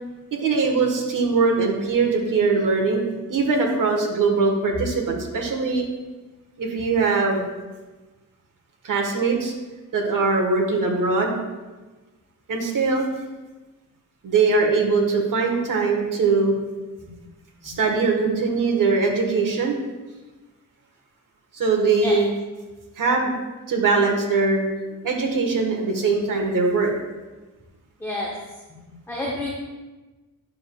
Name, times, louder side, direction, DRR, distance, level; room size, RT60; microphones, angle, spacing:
voice 1, 0.3-3.0 3.3-5.8 6.6-7.5 8.8-9.5 9.9-11.4 12.5-13.1 14.2-16.5 17.6-19.8 21.5-22.3 23.0-23.3 23.7-24.7 25.0-26.9, right 4 dB, 65° right, 1 dB, 1.2 m, -21 dB
voice 2, 28.0-28.3 29.1-29.5, left 1 dB, 5° left, -3 dB, 0.7 m, -28 dB
9.5 x 6.7 x 2.3 m, 1.2 s
wide cardioid pair, 180°, 34 cm